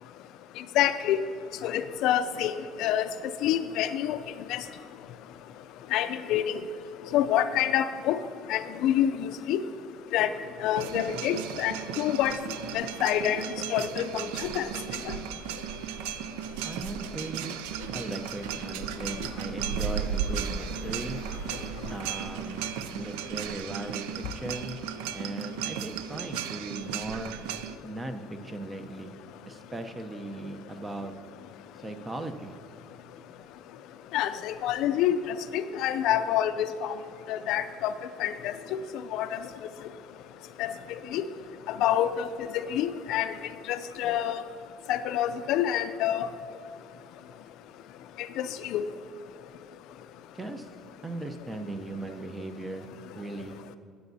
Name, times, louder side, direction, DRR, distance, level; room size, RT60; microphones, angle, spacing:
voice 1, 0.8-1.2 1.6-2.5 2.8-3.1 3.4-4.2 4.5-4.6 5.9-6.4 7.1-8.2 8.5-9.6 10.1-10.3 10.6-12.3 12.7-13.4 13.7-14.7 15.1-15.2 34.1-35.2 35.5-36.9 37.3-37.9 38.2-38.5 39.1-39.4 40.6-40.7 41.1-41.2 41.8-42.3 42.7-43.3 43.7-44.4 44.9-46.3 48.4-48.5 48.7-48.9, left 11 dB, 70° left, 12 dB, 0.4 m, -27 dB
Mridangam in Electroacoustic music, 10.7-27.8, right 8 dB, 85° right, 0.3 m, -35 dB
voice 2, 16.6-17.6 17.9-21.2 21.9-24.8 25.1-27.3 27.8-29.1 29.4-31.1 31.8-32.6 50.3-50.7 51.0-53.6, right 2 dB, 20° right, 7 dB, 0.7 m, -38 dB
14.0 x 8.1 x 2.7 m, 2.5 s
supercardioid pair, 95°, 0 cm